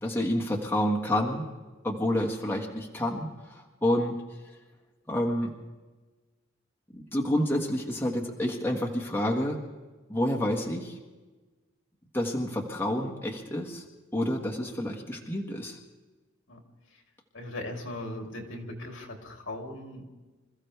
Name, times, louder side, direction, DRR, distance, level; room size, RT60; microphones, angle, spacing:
voice 1, 0.0-1.5 1.8-4.2 5.1-5.5 6.9-9.6 10.1-11.0 12.1-13.8 14.1-15.8, left 1 dB, 10° left, -1 dB, 1.6 m, -29 dB
voice 2, 17.3-20.0, left 1 dB, 65° left, 1 dB, 3.2 m, -38 dB
26.5 x 14.5 x 3.4 m, 1.2 s
head